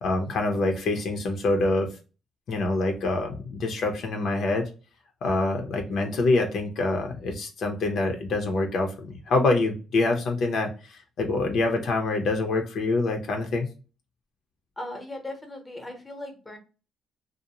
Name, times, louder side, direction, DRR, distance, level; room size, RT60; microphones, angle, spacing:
voice 1, 0.0-2.0 2.5-4.7 5.2-13.7, left 2 dB, 70° left, 3 dB, 0.6 m, -26 dB
voice 2, 14.8-16.6, left 1 dB, 15° left, 4 dB, 0.8 m, -38 dB
2.6 x 2.0 x 2.8 m, 0.33 s
cardioid pair, 90°, 0 cm